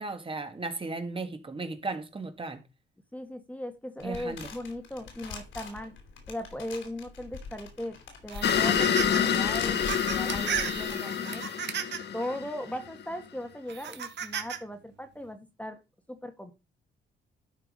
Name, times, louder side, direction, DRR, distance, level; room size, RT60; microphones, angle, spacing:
voice 1, 0.0-2.6 4.0-4.5, right 3 dB, 25° right, 1.7 m, -35 dB
voice 2, 3.1-5.9 6.3-7.9 8.2-11.5 12.1-15.8 16.1-16.5, left 1 dB, 5° left, 1.5 m, -38 dB
sound 1, 4.0-10.9, left 5 dB, 75° left, 3.6 m, -43 dB
sound 2, 8.3-9.2 9.6-12.1 12.8-12.9 13.7-14.6, right 8 dB, 60° right, 1.6 m, -35 dB
sound 3, 8.4-13.0, left 8 dB, 55° left, 1.2 m, -28 dB
12.0 x 4.5 x 5.4 m
cardioid pair, 90°, 20 cm